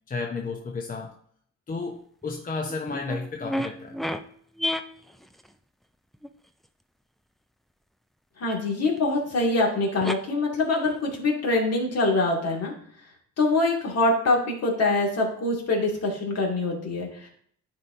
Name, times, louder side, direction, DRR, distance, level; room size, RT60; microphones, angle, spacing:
voice 1, 0.1-1.1 1.7-4.0, left 4 dB, 30° left, 3 dB, 0.7 m, -32 dB
sound 1, 2.2-2.3 2.6-4.3 4.6-5.5 6.1-6.3 9.0-9.1 9.3-9.4 10.0-10.2 10.6-11.3, left 1 dB, ahead, 0.4 m, -31 dB
voice 2, 8.4-12.7 13.4-17.3, left 2 dB, 55° left, -1 dB, 2.2 m, -24 dB
10.5 x 4.4 x 2.6 m, 0.62 s
cardioid pair, 90°, 30 cm